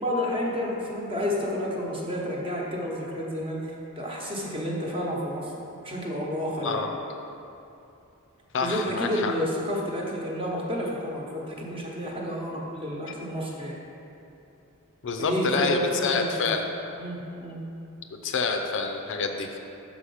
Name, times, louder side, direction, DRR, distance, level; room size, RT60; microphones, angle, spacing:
voice 1, 0.0-5.5 5.8-6.8 8.6-13.8 15.2-16.5 17.0-17.6, equal, 25° right, -3 dB, 1.0 m, -30 dB
voice 2, 8.5-9.3 15.0-16.7 18.2-19.6, left 4 dB, 55° left, 4 dB, 0.5 m, -27 dB
6.2 x 4.8 x 5.6 m, 2.7 s
head